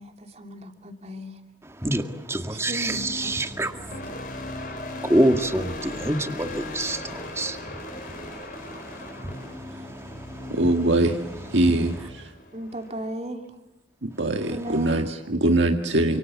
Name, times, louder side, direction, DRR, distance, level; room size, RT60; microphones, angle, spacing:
voice 1, 0.0-1.4 2.5-3.4 12.5-13.5 14.5-15.2, right 1 dB, 35° right, 3.0 m, -36 dB
voice 2, 1.8-4.0 4.8-10.6, right 1 dB, 15° right, 1.9 m, -27 dB
sound 1, 2.8-13.2, left 2 dB, 45° left, 4.7 m, -38 dB
voice 3, 10.5-11.2 11.5-12.2 14.0-16.2, right 1 dB, 75° right, 1.8 m, -22 dB
29.5 x 27.0 x 7.4 m
head